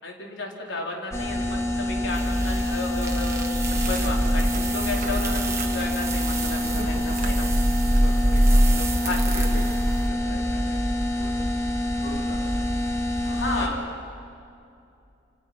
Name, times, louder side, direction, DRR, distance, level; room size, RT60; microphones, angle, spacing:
voice 1, 0.0-3.5 3.9-7.5 9.0-9.6 13.2-13.8, left 2 dB, 90° left, -1 dB, 4.3 m, -33 dB
sound 1, 1.1-13.7, left 1 dB, 15° left, 2.5 m, -26 dB
sound 2, 2.2-10.1, right 1 dB, 15° right, 1.7 m, -25 dB
sound 3, 3.7-9.8, right 2 dB, 45° right, 1.6 m, -37 dB
voice 2, 7.9-9.8 10.1-11.4 12.0-12.5 13.2-13.8, left 1 dB, 60° left, -1 dB, 2.9 m, -41 dB
28.0 x 28.0 x 6.1 m, 2.5 s
head